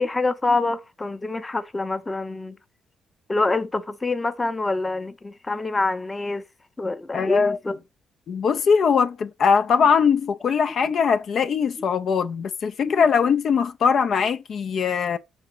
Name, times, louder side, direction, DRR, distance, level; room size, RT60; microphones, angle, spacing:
voice 1, 0.0-2.6 3.3-6.4 6.8-7.8 10.8-10.9 12.8-13.1, left 2 dB, 20° left, 0.8 m, -26 dB
voice 2, 7.1-7.6 8.3-15.2, left 6 dB, 60° left, 0.6 m, -21 dB
6.4 x 3.9 x 5.8 m
cardioid pair, 90°, 0 cm